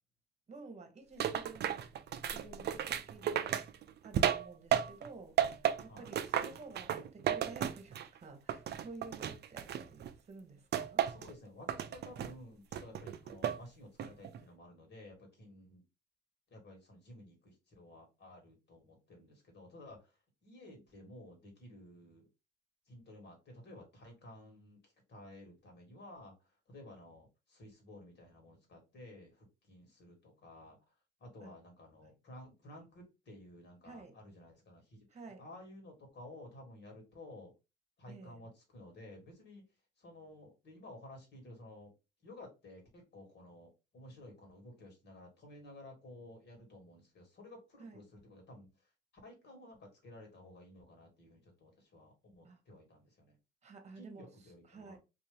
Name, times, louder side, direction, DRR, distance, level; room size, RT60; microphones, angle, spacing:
voice 1, 0.5-1.9 2.3-3.6 4.0-11.0 31.4-31.5 32.0-32.1 33.8-34.2 35.1-35.4 38.1-38.4 47.8-48.0 52.4-52.6 53.6-54.3 54.6-55.0, right 3 dB, 35° right, 1.1 m, -52 dB
sound 1, 1.2-5.1 5.4-8.2 8.5-10.1 10.7-11.3 11.7-12.3 12.7-13.6 14.0-14.4, right 10 dB, 55° right, 0.5 m, -34 dB
voice 2, 10.8-15.8 16.5-20.2 20.4-22.3 22.9-30.8 31.2-35.1 35.4-37.5 38.0-39.6 40.0-41.9 42.2-48.7 49.2-53.4 54.0-55.0, left 1 dB, 60° left, 2.1 m, -54 dB
3.3 x 2.6 x 3.4 m
cardioid pair, 90°, 20 cm